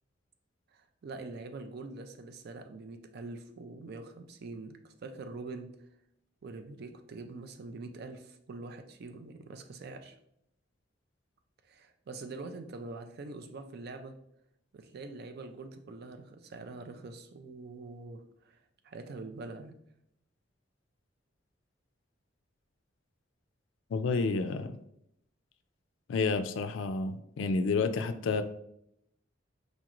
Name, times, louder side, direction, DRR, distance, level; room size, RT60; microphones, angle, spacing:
voice 1, 0.7-5.8 6.4-10.2 11.6-14.2 14.7-18.6 18.8-19.8, right 3 dB, 55° right, 8 dB, 0.4 m, -44 dB
voice 2, 23.9-24.8 26.1-28.4, left 4 dB, 80° left, 10 dB, 0.3 m, -30 dB
5.1 x 3.0 x 2.4 m, 0.75 s
head